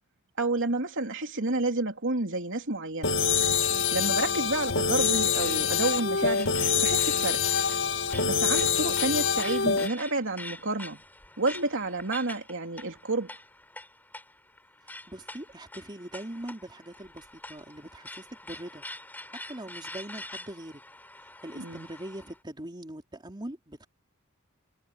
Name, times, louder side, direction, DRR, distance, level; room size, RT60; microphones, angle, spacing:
voice 1, 0.4-3.2 3.9-6.5 6.8-7.4 8.2-11.0 11.4-13.3 21.5-21.8, right 2 dB, 60° right, 3.3 m, -30 dB
sound 1, 3.0-9.9, left 6 dB, 60° left, 1.9 m, -25 dB
sound 2, 4.3-22.4, left 1 dB, 10° left, 5.4 m, -45 dB
voice 2, 15.1-18.8 19.3-20.8 21.4-23.9, right 1 dB, 20° right, 3.1 m, -42 dB
head